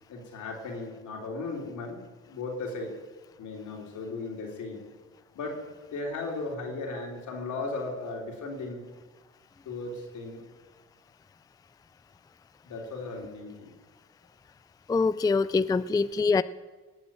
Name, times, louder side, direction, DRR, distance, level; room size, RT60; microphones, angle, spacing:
voice 1, 0.1-2.9 3.4-4.8 5.3-5.6 5.9-8.8 9.7-10.4 12.7-13.7, left 3 dB, 75° left, 0 dB, 3.8 m, -36 dB
voice 2, 14.9-16.4, left 4 dB, 15° left, 15 dB, 0.4 m, -24 dB
18.5 x 7.3 x 8.9 m, 1.3 s
cardioid pair, 90°, 30 cm